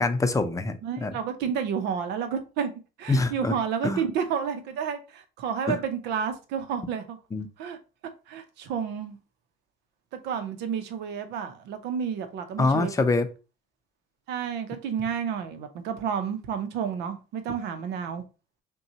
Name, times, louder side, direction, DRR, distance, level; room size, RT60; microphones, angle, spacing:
voice 1, 0.0-1.2 3.1-3.5 3.8-4.0 5.7-5.8 7.3-7.5 12.6-13.3, left 3 dB, 20° left, 0.6 m, -25 dB
voice 2, 0.8-2.7 3.0-7.2 7.6-7.8 8.3-9.2 10.1-12.9 14.3-18.2, right 7 dB, 85° right, 0.8 m, -30 dB
5.3 x 2.3 x 2.9 m
cardioid pair, 110°, 17 cm